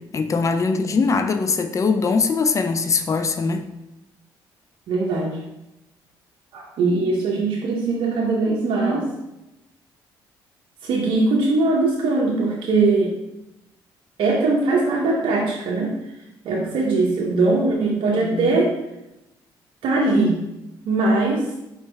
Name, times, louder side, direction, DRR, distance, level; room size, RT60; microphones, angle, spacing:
voice 1, 0.1-3.6 18.2-18.5, left 4 dB, 35° left, 7 dB, 0.4 m, -21 dB
voice 2, 4.9-5.4 6.5-9.1 10.8-13.1 14.2-16.0 16.4-18.8 19.8-20.4 20.9-21.5, right 3 dB, 75° right, -2 dB, 0.7 m, -21 dB
4.4 x 3.3 x 3.3 m, 0.92 s
supercardioid pair, 70°, 9 cm